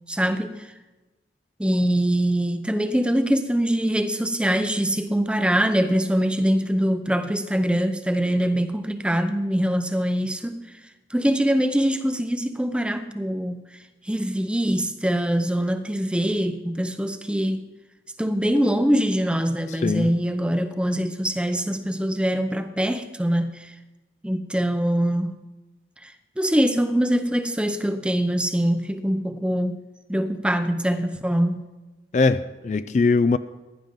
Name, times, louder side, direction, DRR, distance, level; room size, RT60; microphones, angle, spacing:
voice 1, 0.1-0.7 1.6-10.6 11.1-13.6 14.0-17.6 18.2-23.7 24.2-25.4 26.0-29.8 30.1-31.6, equal, 5° right, 0.6 m, -23 dB
voice 2, 19.7-20.1 32.1-33.4, left 4 dB, 40° left, 0.3 m, -21 dB
15.5 x 10.5 x 3.8 m
head